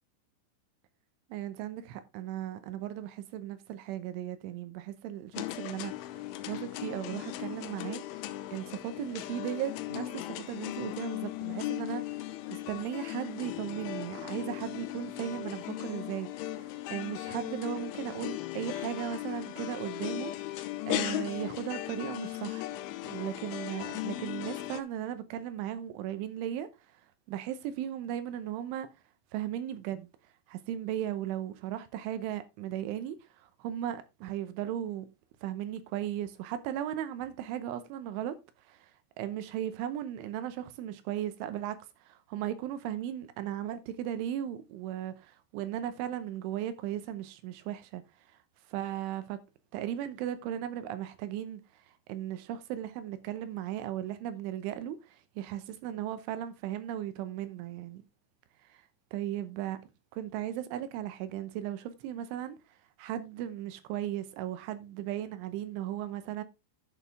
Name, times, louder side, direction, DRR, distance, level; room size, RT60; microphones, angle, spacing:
voice 1, 1.3-5.9 6.5-8.0 8.5-12.0 12.5-20.4 20.9-22.7 23.0-26.7 27.3-28.9 29.3-30.1 30.5-35.1 35.4-38.4 38.7-38.9 39.2-41.8 42.1-48.0 48.7-49.4 49.7-51.6 52.1-55.0 55.4-58.0 58.7-58.8 59.1-59.8 60.1-62.6 63.0-66.4, right 11 dB, 85° right, 3.4 m, -36 dB
sound 1, 5.3-24.8, left 15 dB, 90° left, 3.2 m, -37 dB
11.0 x 6.6 x 3.5 m
omnidirectional pair, 5.5 m